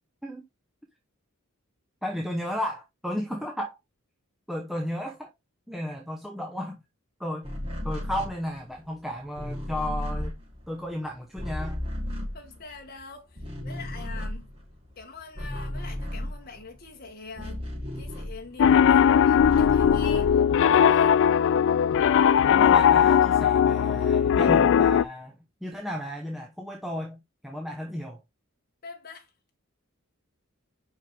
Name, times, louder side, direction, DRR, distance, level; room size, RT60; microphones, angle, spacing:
voice 1, 2.0-3.8 4.5-5.3 5.7-6.8 7.2-7.5 7.8-10.3 10.7-11.8 22.5-28.2, equal, ahead, 0.9 m, -34 dB
sound 1, 7.4-13.0 13.3-18.8 19.1-20.9, left 1 dB, 30° right, 3.3 m, -35 dB
voice 2, 12.3-14.5 14.9-17.7 17.9-21.2 28.8-29.3, left 4 dB, 45° left, 1.6 m, -44 dB
Piano, 18.6-25.0, left 8 dB, 65° left, 0.3 m, -19 dB
5.7 x 5.5 x 3.5 m
head